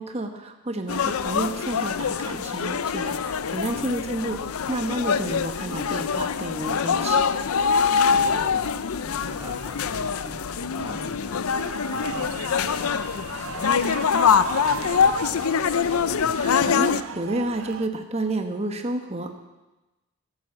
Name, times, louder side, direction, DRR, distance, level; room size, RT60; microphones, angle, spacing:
voice 1, 0.0-7.2 16.4-19.4, right 2 dB, 30° right, 5 dB, 1.3 m, -30 dB
sound 1, 0.9-17.0, left 6 dB, 80° left, 0.5 m, -24 dB
voice 2, 7.9-8.7 9.0-11.5 11.9-14.1 14.5-15.4, equal, 10° right, -3 dB, 2.9 m, -42 dB
sound 2, 11.5-17.9, right 6 dB, 70° right, 0.5 m, -37 dB
13.0 x 10.5 x 7.4 m, 1.1 s
head